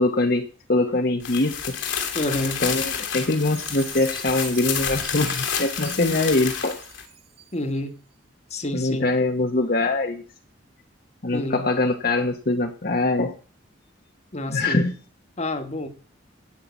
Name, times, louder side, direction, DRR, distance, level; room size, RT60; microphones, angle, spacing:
voice 1, 0.0-1.7 2.6-6.8 8.7-10.2 11.2-13.3 14.5-14.9, left 2 dB, 50° left, 1.1 m, -23 dB
sound 1, 1.2-7.0, left 7 dB, 75° left, 2.7 m, -29 dB
voice 2, 2.1-2.6 7.5-7.9 8.5-9.0 11.3-11.7 14.3-14.9 15.4-15.9, left 1 dB, 35° left, 1.4 m, -28 dB
Chime, 3.5-7.8, right 10 dB, 50° right, 2.6 m, -43 dB
17.0 x 5.8 x 8.4 m
head